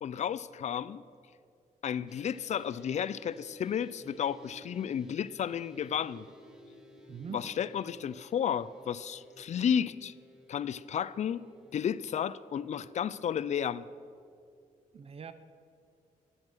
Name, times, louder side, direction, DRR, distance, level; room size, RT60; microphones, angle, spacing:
voice 1, 0.0-1.0 1.8-6.3 7.3-10.1 10.5-11.4 11.7-13.8, left 8 dB, 55° left, 17 dB, 0.4 m, -32 dB
sound 1, 2.1-14.2, left 1 dB, 5° right, 1.7 m, -58 dB
sound 2, 2.8-9.5, right 3 dB, 70° left, 3.0 m, -58 dB
voice 2, 7.1-7.5 14.9-15.3, right 6 dB, 45° right, 11 dB, 0.7 m, -42 dB
14.5 x 11.0 x 6.2 m, 2.4 s
wide cardioid pair, 125°, 14 cm